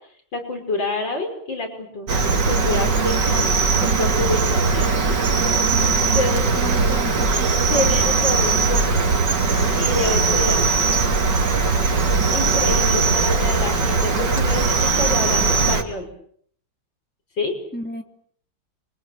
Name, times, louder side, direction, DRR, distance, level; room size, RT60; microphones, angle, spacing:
voice 1, 0.3-3.5 3.8-5.1 6.1-6.5 7.7-9.0 9.7-10.7 12.3-16.1 17.4-17.5, left 2 dB, 85° left, 4 dB, 6.6 m, -27 dB
Cricket, 2.1-15.8, right 4 dB, 70° right, 3.0 m, -19 dB
voice 2, 6.5-7.7 17.7-18.0, equal, 5° left, 3 dB, 3.1 m, -33 dB
28.0 x 25.0 x 7.6 m, 0.63 s
omnidirectional pair, 2.0 m